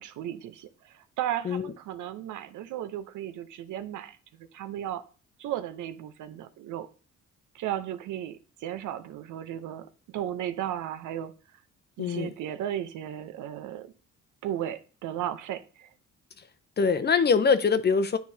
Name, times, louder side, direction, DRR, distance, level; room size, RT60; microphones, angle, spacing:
voice 1, 0.0-5.0 5.4-6.9 7.5-11.3 12.0-13.9 14.4-15.9, right 11 dB, 80° right, 0.7 m, -35 dB
voice 2, 12.0-12.3 16.8-18.2, left 5 dB, 35° left, 0.7 m, -23 dB
9.5 x 4.6 x 2.7 m
cardioid pair, 90°, 30 cm